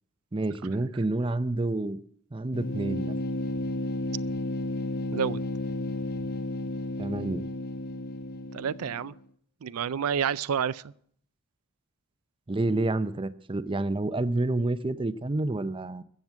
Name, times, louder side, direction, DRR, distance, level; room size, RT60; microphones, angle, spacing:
voice 1, 0.3-2.0 2.3-3.2 7.0-7.5 12.5-16.0, right 2 dB, 25° right, 13 dB, 0.5 m, -29 dB
sound 1, 2.5-9.2, left 1 dB, 45° left, 0.7 m, -32 dB
voice 2, 8.5-9.1 9.6-10.8, right 7 dB, 80° right, 17 dB, 0.4 m, -29 dB
14.5 x 7.8 x 8.1 m, 0.65 s
head